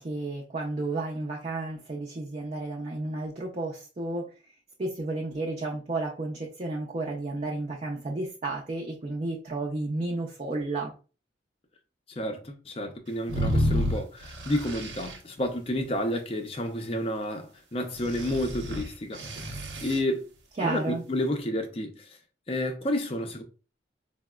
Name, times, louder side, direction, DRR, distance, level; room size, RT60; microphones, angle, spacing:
voice 1, 0.0-4.4 4.8-10.9 20.6-21.0, right 2 dB, 35° right, 0.5 m, -32 dB
voice 2, 12.1-19.5 19.8-20.3 20.6-22.2 22.5-23.4, left 1 dB, 30° left, 0.5 m, -30 dB
sound 1, 13.3-15.2 18.0-20.0, equal, 80° right, 0.7 m, -30 dB
4.5 x 2.0 x 2.2 m
head